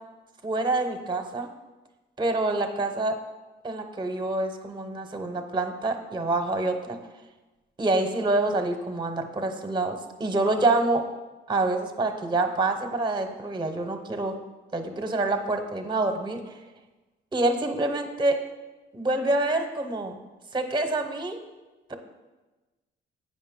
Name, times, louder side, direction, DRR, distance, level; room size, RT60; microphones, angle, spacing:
voice 1, 0.4-1.5 2.2-3.2 3.6-7.0 7.8-11.1 11.5-14.4 14.7-16.5 17.3-18.4 18.9-20.2 20.5-21.4 21.9-22.0, right 2 dB, 25° right, 7 dB, 0.8 m, -26 dB
8.3 x 5.3 x 3.6 m, 1.2 s
cardioid pair, 90°, 20 cm